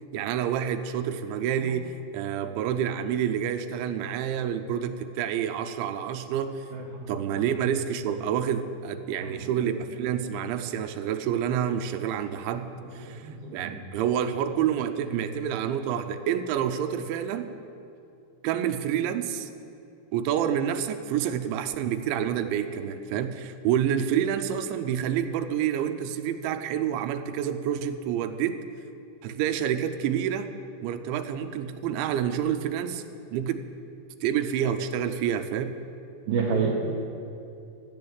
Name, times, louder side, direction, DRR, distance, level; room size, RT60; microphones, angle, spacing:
voice 1, 0.1-6.7 7.1-17.5 18.4-19.5 20.1-28.6 29.2-30.5 30.8-33.0 33.3-33.6 34.2-35.8, right 9 dB, 85° right, 8 dB, 3.1 m, -28 dB
voice 2, 6.7-7.7 9.2-9.7 10.1-10.2 10.6-10.7 12.8-13.8 15.3-15.4 36.3-36.8, right 5 dB, 65° right, -3 dB, 2.7 m, -31 dB
14.0 x 7.6 x 9.5 m, 2.6 s
omnidirectional pair, 5.2 m